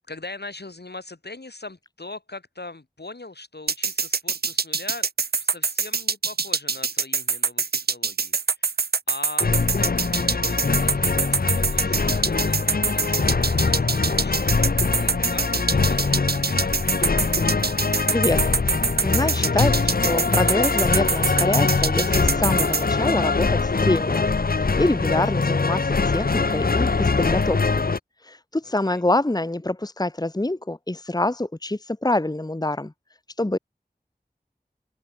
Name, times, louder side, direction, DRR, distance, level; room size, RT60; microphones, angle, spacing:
voice 1, 0.0-5.1 5.4-14.6 14.9-17.3 28.6-29.0, left 2 dB, 85° left, 6.6 m, -41 dB
sound 1, 3.7-22.8, right 5 dB, 70° right, 0.5 m, -24 dB
sound 2, 9.4-28.0, left 4 dB, 65° left, 0.7 m, -23 dB
voice 2, 18.1-18.5 19.0-27.8 28.2-32.9 33.4-33.6, left 2 dB, 25° left, 1.1 m, -25 dB
wide cardioid pair, 40°, 17 cm